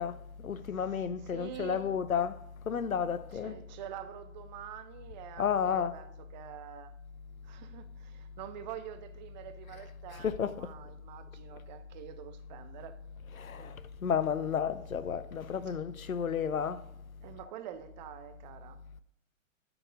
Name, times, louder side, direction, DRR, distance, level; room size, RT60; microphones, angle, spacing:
voice 1, 0.0-2.4 2.7-3.6 5.4-5.9 10.1-10.7 13.3-16.8, left 7 dB, 90° left, 0.6 m, -32 dB
voice 2, 1.3-1.8 3.3-6.9 7.4-13.0 13.6-13.7 15.7-15.8 17.2-19.0, right 10 dB, 35° right, 0.6 m, -46 dB
12.5 x 4.8 x 3.8 m
figure-of-eight pair, 110°, 40 cm